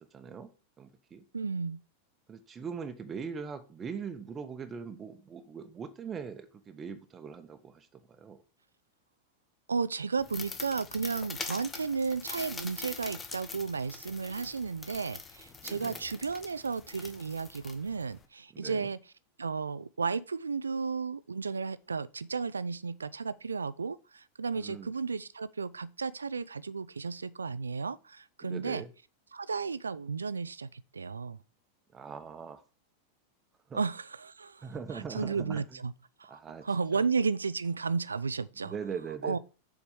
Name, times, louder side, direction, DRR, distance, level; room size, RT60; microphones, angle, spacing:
voice 1, 0.1-0.5 0.8-1.2 2.3-8.4 15.6-16.0 18.5-18.9 24.5-24.9 28.4-28.9 31.9-32.6 33.7-33.8 34.6-35.6 36.3-36.7 36.9-37.0 38.6-39.4, right 6 dB, 20° right, 1.1 m, -41 dB
voice 2, 1.3-1.8 9.7-19.0 19.4-28.8 29.3-31.4 33.7-35.9 36.2-38.7 39.2-39.4, right 5 dB, 75° right, 0.4 m, -33 dB
sound 1, 10.2-18.2, left 4 dB, 20° left, 1.1 m, -43 dB
7.1 x 4.7 x 7.0 m
figure-of-eight pair, 90°, 0 cm